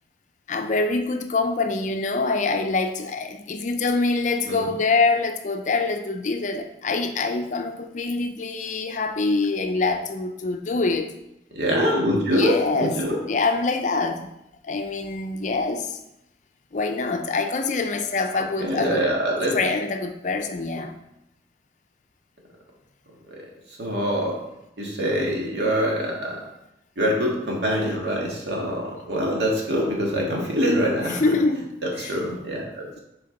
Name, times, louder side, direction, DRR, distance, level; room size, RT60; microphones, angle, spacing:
voice 1, 0.5-11.1 12.3-13.0 13.3-14.3 14.6-16.0 16.7-19.0 19.5-21.0 31.1-31.7 32.0-32.2, left 3 dB, 45° left, 6 dB, 0.5 m, -25 dB
voice 2, 11.5-13.2 18.3-19.6 23.7-24.3 24.8-26.4 27.0-31.2 31.8-33.0, equal, 75° right, -2 dB, 1.7 m, -24 dB
6.7 x 4.3 x 3.9 m, 0.85 s
head